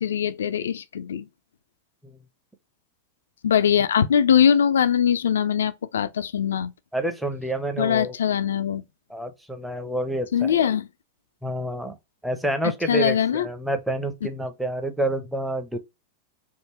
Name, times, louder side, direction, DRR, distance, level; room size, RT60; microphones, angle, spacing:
voice 1, 0.0-1.3 3.4-6.7 7.8-8.8 10.3-10.9 12.9-13.5 14.2-14.3, left 8 dB, 65° left, 0.3 m, -21 dB
voice 2, 6.9-8.1 9.1-10.5 11.4-12.0 12.2-15.8, right 1 dB, 5° right, 0.7 m, -28 dB
3.6 x 2.5 x 2.9 m
figure-of-eight pair, 90°, 0 cm